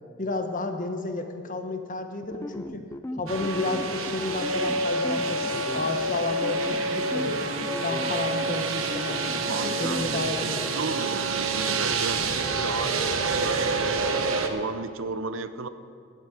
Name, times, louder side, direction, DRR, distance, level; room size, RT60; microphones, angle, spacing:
voice 1, 0.2-2.8 3.2-7.5 7.8-10.7, left 2 dB, 40° left, 6 dB, 1.1 m, -32 dB
sound 1, 2.2-10.8, left 1 dB, 15° left, 0.4 m, -37 dB
sound 2, 3.3-14.5, right 3 dB, 90° right, 1.1 m, -27 dB
voice 2, 9.5-15.7, right 4 dB, 70° right, 12 dB, 0.7 m, -35 dB
12.5 x 8.8 x 8.2 m, 2.3 s
head